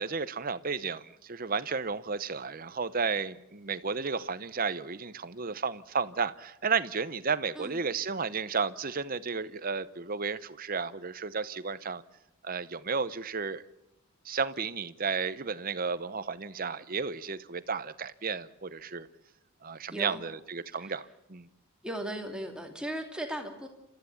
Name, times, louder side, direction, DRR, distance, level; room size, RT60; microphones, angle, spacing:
voice 1, 0.0-12.0 12.4-13.6 14.2-19.1 19.6-21.5, right 5 dB, 40° right, 14 dB, 0.8 m, -33 dB
voice 2, 19.9-20.2 20.8-21.0 21.8-23.7, right 1 dB, 5° right, 2 dB, 2.6 m, -37 dB
29.0 x 14.0 x 8.4 m, 0.90 s
head